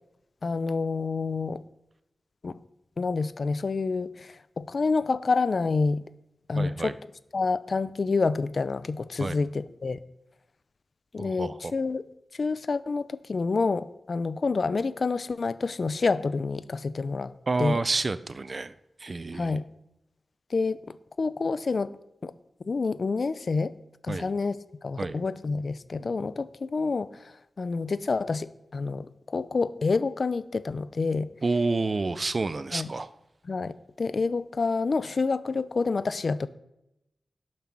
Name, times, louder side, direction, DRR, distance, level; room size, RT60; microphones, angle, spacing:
voice 1, 0.4-1.6 2.4-2.6 3.0-6.0 6.5-10.0 11.1-12.0 12.3-17.3 17.6-17.8 19.3-19.6 20.5-21.9 22.2-22.3 22.6-23.7 24.0-24.6 24.8-31.3 32.7-32.9 33.5-36.5, left 4 dB, 55° left, 15 dB, 0.6 m, -28 dB
voice 2, 6.5-6.9 9.2-9.4 11.2-11.7 17.5-18.7 19.0-19.6 24.1-24.3 25.0-25.2 31.4-33.1, right 3 dB, 45° right, 14 dB, 0.6 m, -29 dB
11.5 x 7.5 x 6.0 m, 0.86 s
wide cardioid pair, 85°, 0 cm